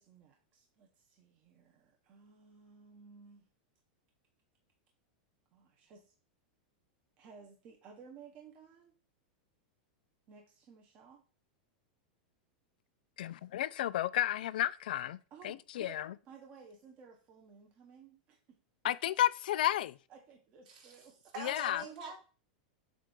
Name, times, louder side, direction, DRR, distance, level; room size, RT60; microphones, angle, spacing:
voice 1, 0.0-3.5 5.5-6.1 7.2-8.9 10.3-11.2 15.3-16.0 16.2-18.6 20.1-21.3, right 6 dB, 30° right, 0.8 m, -56 dB
voice 2, 13.2-15.2 15.4-16.1 18.8-20.0 21.4-21.8, left 12 dB, 75° left, 0.3 m, -32 dB
voice 3, 21.3-22.2, right 4 dB, 55° right, 2.4 m, -44 dB
7.3 x 2.5 x 5.2 m
supercardioid pair, 165°, 5 cm